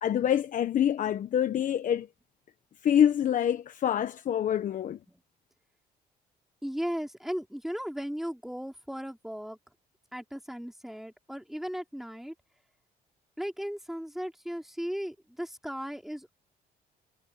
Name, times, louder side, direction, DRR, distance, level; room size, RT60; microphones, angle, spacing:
voice 1, 0.0-2.1 2.8-5.0, left 9 dB, 50° left, 1.1 m, -26 dB
voice 2, 6.6-9.6 10.1-12.3 13.4-16.3, equal, ahead, 3.6 m, -36 dB
cardioid pair, 110°, 17 cm